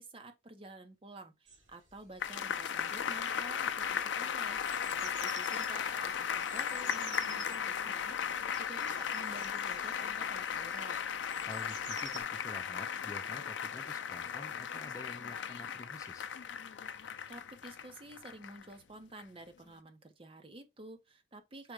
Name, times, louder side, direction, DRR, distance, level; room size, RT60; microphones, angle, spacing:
voice 1, 0.0-8.2 8.6-11.0 17.0-21.7, right 2 dB, 30° right, 0.7 m, -51 dB
sound 1, 1.5-12.2, right 4 dB, 80° right, 3.0 m, -52 dB
sound 2, 2.2-18.7 19.2-19.3, left 8 dB, 85° left, 0.4 m, -36 dB
voice 2, 11.4-16.3, left 2 dB, 20° left, 0.4 m, -49 dB
4.7 x 2.2 x 4.5 m
head